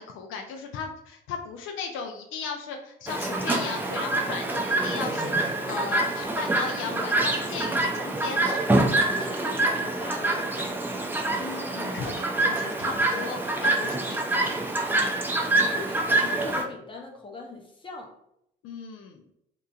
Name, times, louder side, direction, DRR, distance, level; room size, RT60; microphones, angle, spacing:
voice 1, 0.0-8.6 11.4-14.6 18.6-19.2, left 6 dB, 85° left, 4 dB, 0.4 m, -36 dB
Chirp tweet, 3.1-16.6, right 2 dB, 10° right, 0.4 m, -26 dB
voice 2, 9.0-11.1 15.4-18.1, left 2 dB, 25° left, 0 dB, 0.7 m, -41 dB
2.8 x 2.4 x 2.3 m, 0.76 s
cardioid pair, 90°, 20 cm